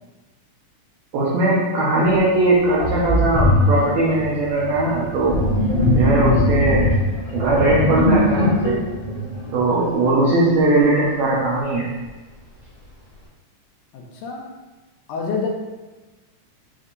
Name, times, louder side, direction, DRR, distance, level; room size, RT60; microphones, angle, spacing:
voice 1, 1.1-5.4 5.9-6.9 7.3-8.8 9.5-11.9, right 2 dB, 70° right, -7 dB, 1.7 m, -19 dB
Sink (filling or washing), 2.1-2.2 2.8-10.1, left 1 dB, 45° left, 0.6 m, -20 dB
voice 2, 13.9-14.5 15.1-15.5, left 5 dB, 80° left, 0 dB, 2.0 m, -27 dB
7.2 x 2.7 x 2.5 m, 1.2 s
omnidirectional pair, 3.7 m